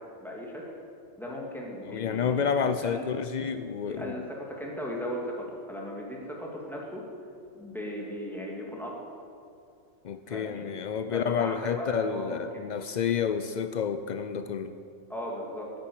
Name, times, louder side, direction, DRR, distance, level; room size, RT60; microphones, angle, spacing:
voice 1, 0.2-0.6 1.2-3.0 3.9-7.0 7.5-9.0 10.3-10.7 11.1-12.7 15.1-15.7, equal, ahead, -3 dB, 2.4 m, -37 dB
voice 2, 1.9-4.3 10.0-14.8, left 7 dB, 75° left, 10 dB, 0.4 m, -30 dB
10.5 x 10.0 x 8.7 m, 2.5 s
omnidirectional pair, 1.4 m